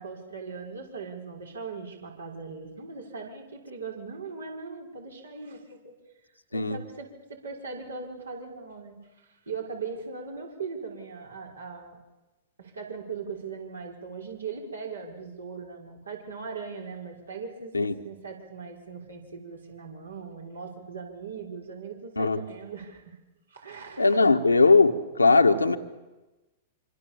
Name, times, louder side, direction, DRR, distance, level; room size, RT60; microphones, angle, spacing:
voice 1, 0.0-5.8 6.5-12.0 12.6-17.7 18.0-23.1 23.5-24.2, right 5 dB, 80° right, 0 dB, 5.7 m, -39 dB
voice 2, 24.0-25.8, left 3 dB, 90° left, 6 dB, 1.7 m, -20 dB
26.0 x 26.0 x 7.3 m, 1.1 s
figure-of-eight pair, 105°, 0 cm